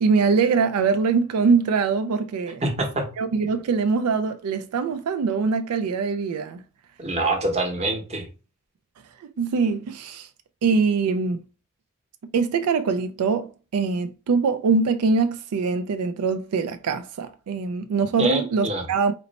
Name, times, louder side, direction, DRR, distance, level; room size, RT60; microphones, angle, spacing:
voice 1, 0.0-2.6 3.2-6.6 9.2-10.3 10.6-11.4 12.3-19.1, right 5 dB, 85° right, 0.4 m, -23 dB
voice 2, 2.6-3.1 7.0-8.3 18.2-18.8, right 2 dB, 30° right, 0.9 m, -25 dB
4.2 x 2.1 x 4.0 m
head